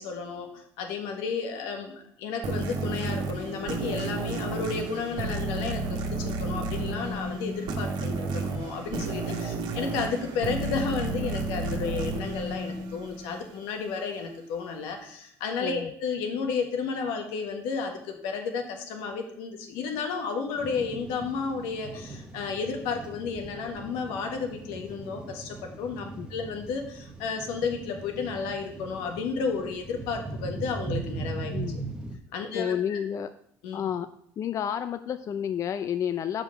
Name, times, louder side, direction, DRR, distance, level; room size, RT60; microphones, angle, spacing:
voice 1, 0.0-31.5 32.3-33.0 33.6-33.8, left 5 dB, 80° left, 4 dB, 1.5 m, -32 dB
sound 1, 2.4-13.6, right 3 dB, 60° right, 1.4 m, -32 dB
voice 2, 15.6-15.9 26.2-26.3 31.5-31.8 32.5-33.3 33.7-34.1 34.4-36.4, left 9 dB, 40° left, 11 dB, 0.4 m, -30 dB
sound 2, 20.6-32.2, right 3 dB, 10° right, 0.9 m, -39 dB
5.6 x 5.0 x 6.4 m, 0.68 s
cardioid pair, 105°, 8 cm